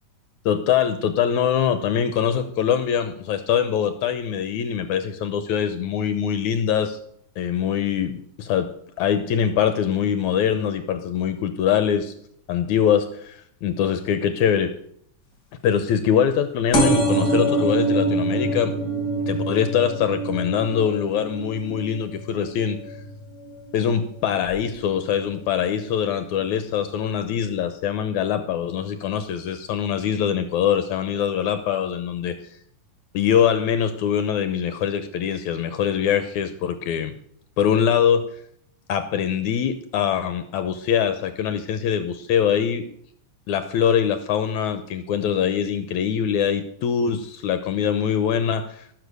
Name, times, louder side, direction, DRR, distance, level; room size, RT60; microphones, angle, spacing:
voice 1, 0.5-7.0 7.4-8.7 9.0-12.1 12.5-14.7 15.6-18.7 19.3-22.8 23.7-32.4 33.1-37.1 37.6-38.3 38.9-42.9 43.5-48.9, left 8 dB, 75° left, 10 dB, 2.2 m, -23 dB
sound 1, 16.7-24.0 24.5-24.9 25.8-25.9 26.1-26.2 26.4-26.5, right 2 dB, 35° left, 3.1 m, -25 dB
18.5 x 7.6 x 6.7 m, 0.67 s
omnidirectional pair, 3.5 m